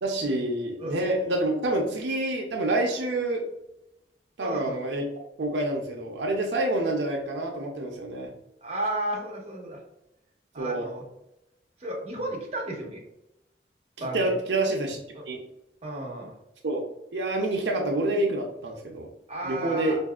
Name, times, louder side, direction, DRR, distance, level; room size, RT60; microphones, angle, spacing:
voice 1, 0.0-3.4 4.4-5.1 5.4-8.3 10.6-10.9 14.0-15.0 15.3-15.4 16.6-16.8 17.1-19.1 19.4-20.0, right 2 dB, 85° right, 1 dB, 0.6 m, -27 dB
voice 2, 4.4-4.8 8.6-9.8 10.5-11.0 11.8-13.0 14.0-14.3 15.1-15.2 15.8-16.3 19.3-20.0, right 1 dB, 35° right, -1 dB, 0.9 m, -33 dB
4.7 x 2.6 x 2.3 m, 0.86 s
head